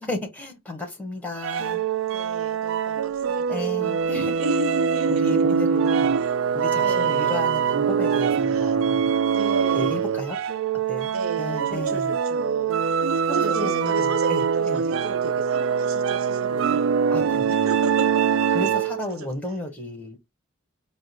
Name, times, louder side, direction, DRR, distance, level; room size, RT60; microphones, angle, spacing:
voice 1, 0.0-1.8 3.5-4.4 5.1-6.2 6.5-9.1 9.7-10.4 10.9-11.1 11.4-12.2 13.3-14.8 17.1-17.7 18.5-20.2, left 2 dB, 5° left, 1.1 m, -33 dB
sound 1, 1.4-19.1, right 6 dB, 65° right, 0.3 m, -23 dB
voice 2, 2.1-5.6 6.2-6.4 6.7-7.4 8.4-8.8 9.3-10.3 11.1-12.9 13.3-16.9 17.2-18.1 19.2-19.3, right 3 dB, 85° right, 0.7 m, -34 dB
4.7 x 2.0 x 4.2 m
head